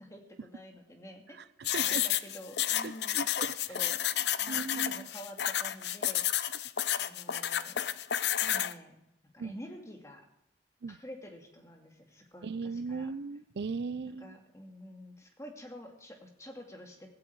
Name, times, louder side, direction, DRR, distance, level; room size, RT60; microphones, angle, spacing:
voice 1, 0.0-1.4 1.8-4.0 4.4-6.5 7.0-7.8 8.4-9.0 9.3-10.3 10.9-13.1 14.2-17.1, equal, 15° left, 3 dB, 2.2 m, -48 dB
voice 2, 1.3-2.0 2.8-3.5 4.5-5.1 9.4-9.6 10.8-11.0 12.4-14.4, right 4 dB, 70° right, 17 dB, 0.4 m, -38 dB
sound 1, 1.6-8.7, left 11 dB, 70° left, 0.6 m, -31 dB
16.0 x 16.0 x 4.7 m, 0.83 s
head